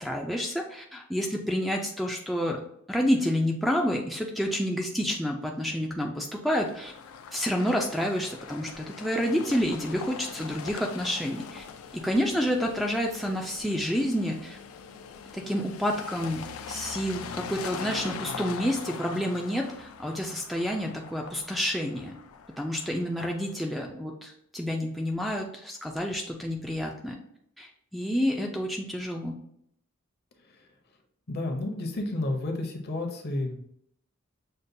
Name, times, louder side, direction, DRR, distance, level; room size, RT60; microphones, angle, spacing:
voice 1, 0.0-2.6 2.9-6.9 7.3-11.6 11.9-14.6 15.3-22.1 22.6-27.2 27.6-29.4, equal, ahead, 1 dB, 0.3 m, -29 dB
sound 1, 6.6-23.5, left 6 dB, 90° left, 0.4 m, -42 dB
voice 2, 31.3-33.6, left 2 dB, 50° left, 3 dB, 0.7 m, -31 dB
6.5 x 2.2 x 2.6 m, 0.72 s
head